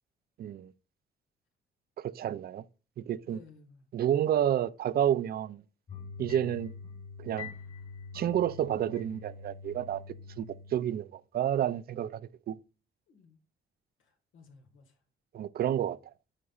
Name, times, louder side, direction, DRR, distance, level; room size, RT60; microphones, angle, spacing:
voice 1, 0.4-0.7 2.0-2.6 3.0-3.4 3.9-5.6 6.2-6.7 7.2-7.5 8.1-10.0 10.4-12.2 12.5-12.6 15.3-16.0, right 10 dB, 50° right, 0.4 m, -30 dB
voice 2, 3.2-3.8 13.1-13.4 14.0-15.0, left 4 dB, 80° left, 1.5 m, -56 dB
sound 1, 5.9-10.9, left 5 dB, 50° left, 2.8 m, -45 dB
9.5 x 4.1 x 2.4 m
cardioid pair, 90°, 20 cm